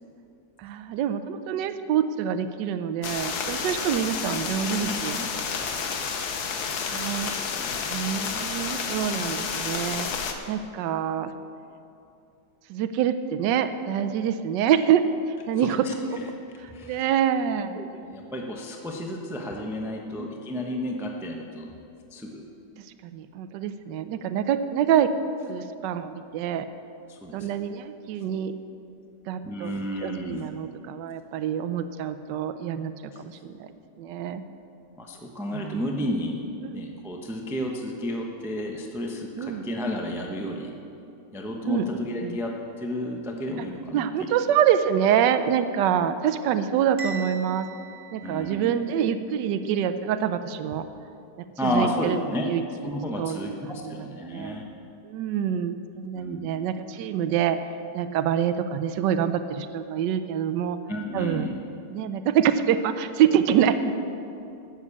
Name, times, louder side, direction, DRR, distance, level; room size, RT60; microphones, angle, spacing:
voice 1, 0.6-5.2 6.9-7.3 7.9-10.1 10.5-11.3 12.7-15.1 15.5-16.2 16.6-17.8 20.2-20.3 23.0-25.2 25.5-26.7 27.3-28.5 29.3-29.7 30.0-32.9 33.2-33.7 34.0-34.4 35.5-35.8 36.6-36.8 39.4-39.6 41.6-41.8 42.2-42.4 43.9-47.7 48.1-50.9 51.6-52.2 52.4-54.5 55.0-57.6 57.9-60.8 61.1-61.5 61.9-64.0, right 9 dB, 80° right, 10 dB, 1.2 m, -26 dB
sound 1, 3.0-10.3, left 6 dB, 65° left, 1.4 m, -30 dB
voice 2, 4.8-5.3 7.6-7.8 15.6-16.2 16.7-17.0 17.7-21.7 22.1-22.4 27.1-27.5 29.4-30.5 33.1-33.2 35.0-36.4 36.7-40.8 41.3-44.1 48.2-48.7 51.6-52.5 52.8-54.7 56.1-56.5 60.9-61.5, left 1 dB, ahead, 1 dB, 0.7 m, -32 dB
Bell, 47.0-49.0, right 4 dB, 40° right, 2.3 m, -40 dB
12.0 x 7.5 x 8.4 m, 2.7 s
omnidirectional pair, 1.9 m